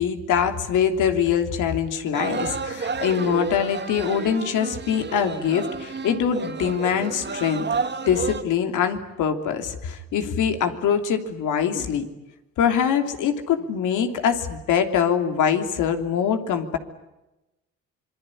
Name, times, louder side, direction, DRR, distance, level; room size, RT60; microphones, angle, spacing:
voice 1, 0.0-7.7 8.1-12.1 12.6-16.8, left 8 dB, 85° left, 6 dB, 3.1 m, -23 dB
sound 1, 2.1-8.4, right 5 dB, 35° right, 2.2 m, -31 dB
26.5 x 22.5 x 10.0 m, 0.99 s
cardioid pair, 90°, 30 cm